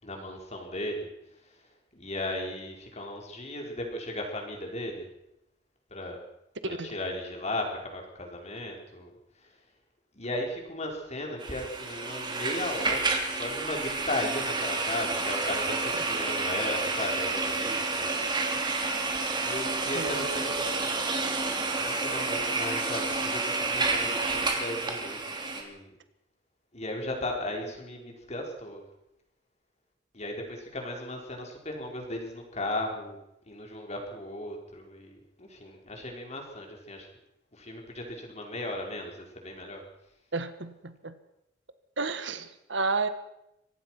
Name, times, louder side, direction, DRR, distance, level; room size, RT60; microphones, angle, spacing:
voice 1, 0.0-5.1 5.9-6.2 6.6-9.1 9.4-9.6 10.1-18.1 18.8-18.9 19.4-20.7 21.5-26.0 26.7-28.8 30.1-33.2 33.5-37.1 37.5-39.9, left 1 dB, 35° left, 2 dB, 5.2 m, -36 dB
sound 1, 11.4-25.6, right 3 dB, 25° right, 3.1 m, -30 dB
voice 2, 40.3-41.1 42.0-43.1, right 3 dB, 70° right, 11 dB, 1.6 m, -31 dB
24.5 x 18.0 x 6.1 m, 0.84 s
head